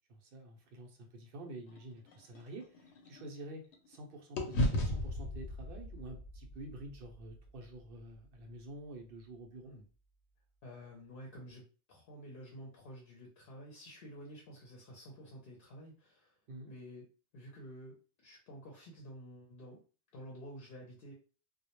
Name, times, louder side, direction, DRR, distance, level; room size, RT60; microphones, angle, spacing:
voice 1, 0.1-9.8 16.5-16.7, right 2 dB, 65° right, 4 dB, 0.7 m, -49 dB
sound 1, 1.7-4.0 4.4-8.6, left 1 dB, 90° left, 0.9 m, -38 dB
voice 2, 10.6-11.6 11.9-16.4 16.7-17.1 17.3-19.8 20.1-21.1, equal, 60° left, -1 dB, 0.7 m, -50 dB
2.2 x 2.0 x 2.9 m, 0.36 s
omnidirectional pair, 1.1 m